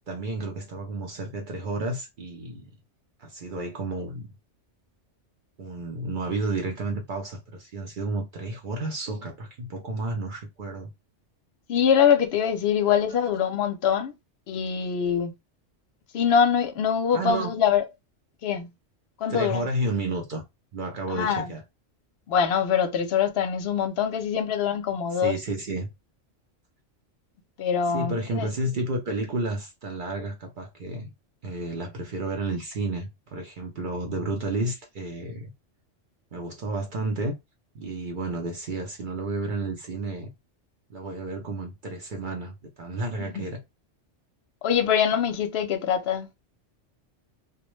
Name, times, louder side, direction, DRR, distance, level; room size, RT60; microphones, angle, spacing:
voice 1, 0.1-2.7 3.2-4.3 5.6-10.9 12.9-13.0 17.1-17.5 19.3-20.4 20.7-21.6 25.1-25.9 27.9-31.1 31.4-35.5 36.3-37.3 37.7-40.3 40.9-43.6, right 2 dB, 55° right, 0.6 m, -31 dB
voice 2, 11.7-14.1 14.5-15.3 16.1-17.8 18.4-18.7 19.2-19.6 21.2-21.5 22.3-25.3 27.6-28.5 43.2-43.5 44.6-46.3, left 7 dB, 65° left, 0.7 m, -24 dB
2.2 x 2.1 x 3.0 m
omnidirectional pair, 1.3 m